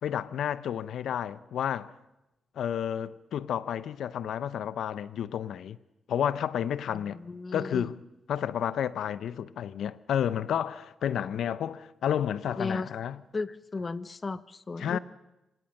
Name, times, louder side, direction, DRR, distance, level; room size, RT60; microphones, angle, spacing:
voice 1, 0.0-1.9 2.6-5.8 6.1-7.2 7.5-8.0 8.3-13.2 14.8-15.0, left 9 dB, 80° left, 0.7 m, -31 dB
voice 2, 7.1-7.9 12.6-12.9 13.3-15.0, left 3 dB, 35° left, 0.9 m, -34 dB
24.5 x 19.0 x 6.6 m
cardioid pair, 75°, 0 cm